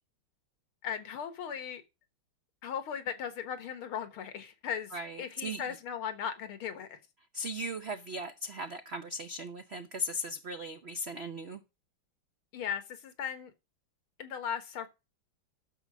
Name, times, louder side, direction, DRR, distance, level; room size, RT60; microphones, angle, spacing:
voice 1, 0.8-1.8 2.6-4.9 5.2-7.0 12.5-13.5 14.2-14.9, left 8 dB, 85° left, 2.2 m, -37 dB
voice 2, 4.9-5.8 7.3-11.6, equal, 60° right, 0.6 m, -38 dB
11.5 x 6.7 x 6.2 m
omnidirectional pair, 2.3 m